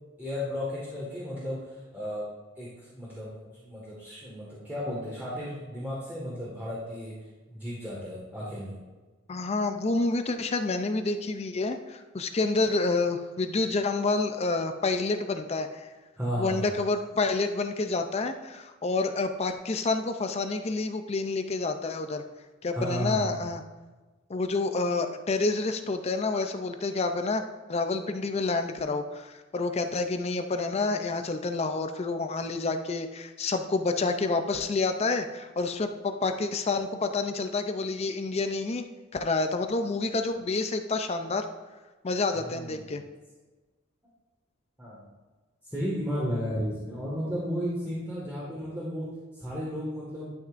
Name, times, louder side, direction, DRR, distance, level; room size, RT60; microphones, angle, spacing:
voice 1, 0.2-2.3 2.6-7.1 7.5-8.8 16.2-16.7 22.7-23.3 42.4-42.9 44.8-45.0 45.6-49.1 49.3-50.3, equal, 10° right, -8 dB, 1.7 m, -34 dB
voice 2, 9.3-15.9 16.4-22.2 22.6-23.6 24.3-27.4 27.7-38.8 39.1-41.5 42.0-43.0, left 3 dB, 30° left, 7 dB, 0.5 m, -28 dB
11.5 x 5.8 x 2.5 m, 1.3 s
head